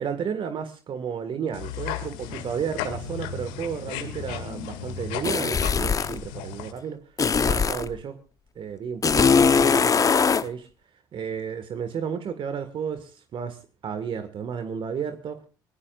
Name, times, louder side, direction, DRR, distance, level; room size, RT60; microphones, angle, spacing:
voice 1, 0.0-7.2 7.4-8.2 8.5-10.7 11.1-15.5, right 7 dB, 50° right, 9 dB, 1.7 m, -33 dB
sound 1, 1.5-6.7, left 9 dB, 75° left, 2.2 m, -35 dB
sound 2, 5.2-6.2 7.2-7.9 9.0-10.5, left 5 dB, 30° left, 0.9 m, -20 dB
25.0 x 17.0 x 2.5 m, 0.33 s
hypercardioid pair, 60°, 11 cm